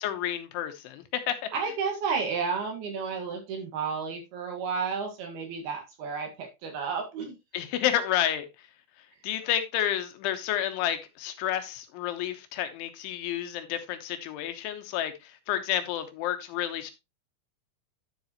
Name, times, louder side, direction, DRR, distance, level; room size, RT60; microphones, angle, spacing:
voice 1, 0.0-1.4 7.5-8.5 9.2-16.9, left 11 dB, 80° left, 9 dB, 3.2 m, -30 dB
voice 2, 1.5-7.4, right 5 dB, 60° right, 3 dB, 3.3 m, -32 dB
10.5 x 7.7 x 3.0 m, 0.23 s
omnidirectional pair, 5.7 m